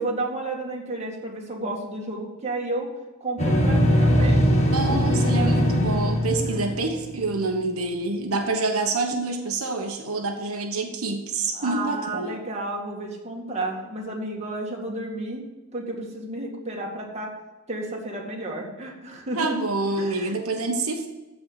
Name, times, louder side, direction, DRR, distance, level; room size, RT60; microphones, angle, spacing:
voice 1, 0.0-2.9 3.2-4.4 4.8-5.1 6.3-6.7 11.5-15.4 15.7-17.3 17.7-19.6 20.0-20.4, right 2 dB, 30° right, -1 dB, 2.2 m, -32 dB
sound 1, 3.4-7.3, equal, 30° left, 1.7 m, -21 dB
voice 2, 4.7-12.4 19.3-21.1, right 3 dB, 85° right, 3 dB, 1.3 m, -27 dB
14.5 x 4.8 x 7.5 m, 1.1 s
head